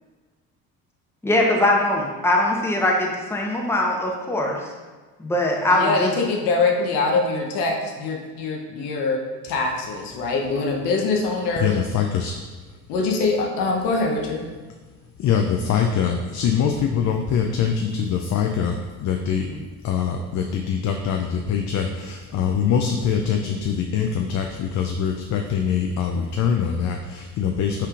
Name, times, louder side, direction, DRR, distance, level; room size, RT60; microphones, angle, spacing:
voice 1, 1.2-4.6 5.2-6.1 19.5-19.6, left 1 dB, 5° left, -1 dB, 0.8 m, -21 dB
voice 2, 5.7-11.7 12.9-14.4, left 3 dB, 75° left, 1 dB, 0.8 m, -23 dB
voice 3, 11.6-12.3 15.2-19.5 19.8-27.9, left 7 dB, 45° left, 3 dB, 0.4 m, -23 dB
5.6 x 3.5 x 2.4 m, 1.4 s
supercardioid pair, 70°, 41 cm